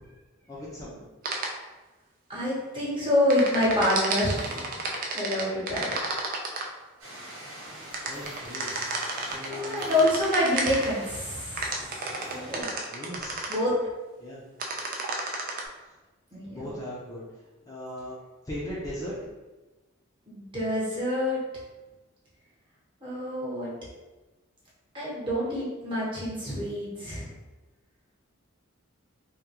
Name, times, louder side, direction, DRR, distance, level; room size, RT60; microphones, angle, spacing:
voice 1, 0.5-1.0 5.7-6.1 8.1-8.7 9.2-10.0 12.8-13.5 14.2-14.4 16.5-17.2 17.7-18.1 18.5-19.1, left 1 dB, 15° left, -7 dB, 0.5 m, -38 dB
sound 1, 1.2-1.5 3.3-6.7 7.9-10.9 11.6-13.6 14.6-15.6, right 3 dB, 40° right, 0.4 m, -31 dB
voice 2, 2.3-4.7 5.1-5.9 9.5-11.7 12.3-12.7 13.5-13.7 16.3-16.7 20.3-21.4 23.0-23.7 24.9-27.3, left 1 dB, 25° right, -7 dB, 1.0 m, -27 dB
sound 2, 7.0-12.6, right 1 dB, 85° right, 1.0 m, -43 dB
3.5 x 2.2 x 2.9 m, 1.2 s
head